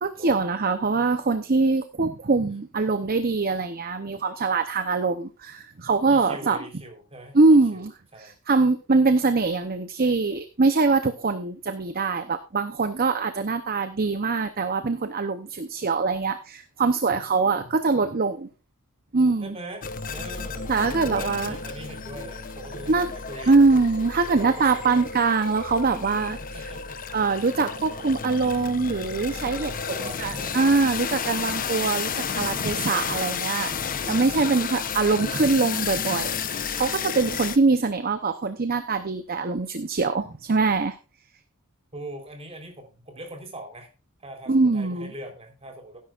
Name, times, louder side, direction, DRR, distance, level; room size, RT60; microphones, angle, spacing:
voice 1, 0.0-6.6 7.3-18.5 19.1-19.6 20.7-21.6 22.9-23.1 23.5-26.7 27.1-29.7 30.2-40.9 44.5-45.1, right 3 dB, 40° right, 10 dB, 0.8 m, -23 dB
voice 2, 6.1-8.4 17.6-17.8 19.4-23.6 24.2-25.1 26.4-27.0 29.6-30.5 31.1-31.9 41.9-43.9 44.2-46.0, right 1 dB, 25° right, 3 dB, 3.9 m, -41 dB
sound 1, 19.8-37.6, left 6 dB, 40° left, 0.8 m, -32 dB
17.0 x 10.5 x 2.5 m, 0.32 s
head